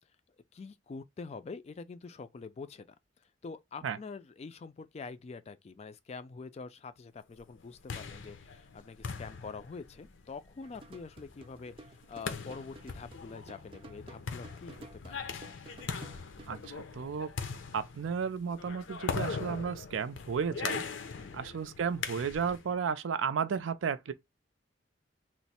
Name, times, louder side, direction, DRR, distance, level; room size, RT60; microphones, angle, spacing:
voice 1, 0.5-2.9 3.4-15.2 21.2-21.4, left 4 dB, 35° left, 0.3 m, -45 dB
sound 1, 7.5-22.7, left 5 dB, 80° left, 0.6 m, -41 dB
sound 2, 10.6-16.7, right 2 dB, 30° right, 0.5 m, -53 dB
voice 2, 16.5-17.3 17.7-20.8 21.3-24.1, right 6 dB, 90° right, 0.4 m, -33 dB
3.1 x 2.0 x 4.1 m
head